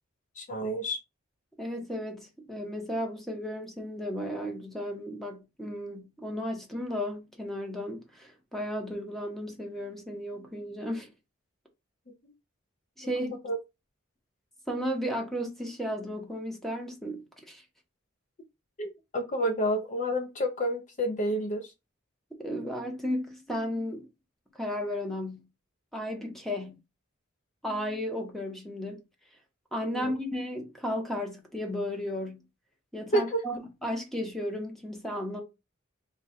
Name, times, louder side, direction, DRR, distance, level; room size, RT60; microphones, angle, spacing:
voice 1, 0.4-1.0 12.1-12.2 13.2-13.6 18.8-21.7 29.9-30.2 33.1-33.4, equal, 35° left, 0.5 m, -30 dB
voice 2, 1.6-11.1 13.0-13.4 14.7-17.6 22.4-24.1 24.5-25.5 25.9-26.8 27.6-29.0 29.7-32.4 32.9-35.4, equal, ahead, 0.8 m, -34 dB
3.6 x 2.3 x 4.1 m
head